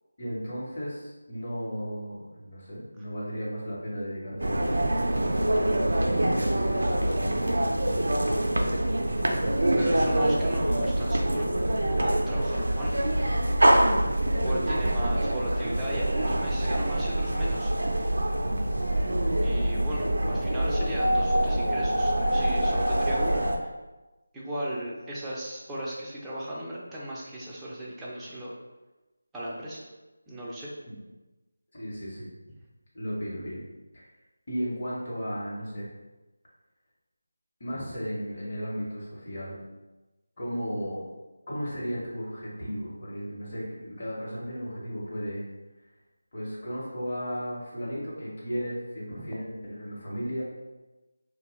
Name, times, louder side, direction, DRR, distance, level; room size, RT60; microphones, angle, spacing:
voice 1, 0.2-4.7 5.1-10.1 18.4-18.7 20.0-20.5 30.9-31.0 31.7-32.3 32.9-33.6 33.9-34.1 34.5-35.8 37.6-39.6 40.4-41.0 41.5-45.4 46.3-50.4, equal, 40° left, -6 dB, 1.0 m, -35 dB
sound 1, 4.4-23.6, right 1 dB, 75° right, 0.4 m, -25 dB
voice 2, 9.8-11.5 11.9-12.9 14.4-18.0 19.4-23.7 24.3-28.5 29.3-29.8 30.3-30.7 37.7-37.8, right 1 dB, 5° right, -8 dB, 0.4 m, -36 dB
2.7 x 2.2 x 3.0 m, 1.1 s
figure-of-eight pair, 165°, 0 cm